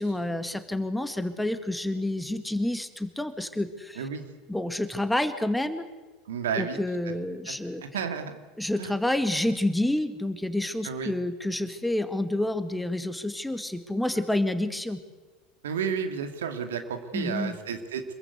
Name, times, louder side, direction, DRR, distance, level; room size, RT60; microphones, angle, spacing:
voice 1, 0.0-4.1 4.5-5.8 6.6-7.8 8.6-15.0 17.1-17.6, left 1 dB, 5° left, 9 dB, 2.0 m, -29 dB
voice 2, 6.3-6.8 7.5-7.6 7.8-8.3 8.8-8.9 10.8-11.1 15.6-18.0, right 7 dB, 70° right, 7 dB, 2.5 m, -31 dB
26.5 x 22.0 x 8.2 m, 1.2 s
figure-of-eight pair, 75°, 0 cm